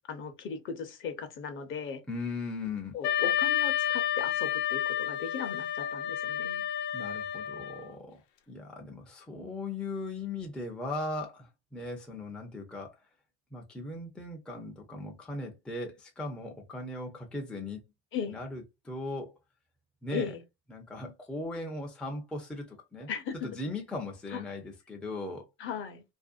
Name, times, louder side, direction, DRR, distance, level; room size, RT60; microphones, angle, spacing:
voice 1, 0.1-2.0 2.9-6.6 18.1-18.4 20.1-20.4 23.1-23.3 24.3-24.4 25.6-26.0, left 6 dB, 40° left, 0.7 m, -37 dB
voice 2, 2.1-2.9 6.9-8.2 8.5-13.0 13.5-17.8 18.3-19.3 20.0-20.3 20.7-23.1 23.4-25.5, left 2 dB, 5° left, 0.5 m, -38 dB
Wind instrument woodwind instrument, 3.0-7.9, left 10 dB, 80° left, 0.8 m, -30 dB
2.6 x 2.1 x 2.4 m
supercardioid pair, 115°, 33 cm